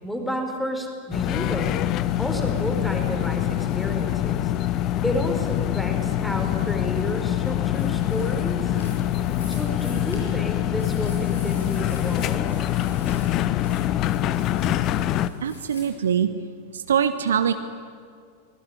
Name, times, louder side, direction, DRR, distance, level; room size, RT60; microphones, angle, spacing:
voice 1, 0.0-1.8 2.2-4.5 5.0-8.8 9.5-12.5, equal, 5° left, 4 dB, 4.5 m, -31 dB
Vending Machine Money Button Vend approaching cart, 1.1-15.3, left 12 dB, 35° left, 0.9 m, -25 dB
sound 1, 7.7-15.8, left 1 dB, 80° left, 7.9 m, -44 dB
voice 2, 15.4-16.3 16.7-17.5, right 8 dB, 65° right, 10 dB, 1.1 m, -23 dB
24.5 x 20.0 x 9.9 m, 2.2 s
figure-of-eight pair, 90°, 0 cm